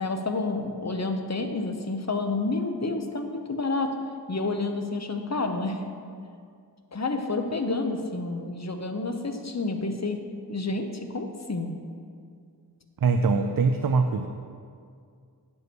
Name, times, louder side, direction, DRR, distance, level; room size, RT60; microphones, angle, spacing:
voice 1, 0.0-3.9 4.3-5.8 6.9-10.2 10.5-11.7, left 3 dB, 40° left, 5 dB, 0.8 m, -29 dB
voice 2, 13.0-14.3, right 4 dB, 60° right, 7 dB, 0.5 m, -22 dB
9.1 x 5.4 x 6.2 m, 2.3 s
wide cardioid pair, 55°, 41 cm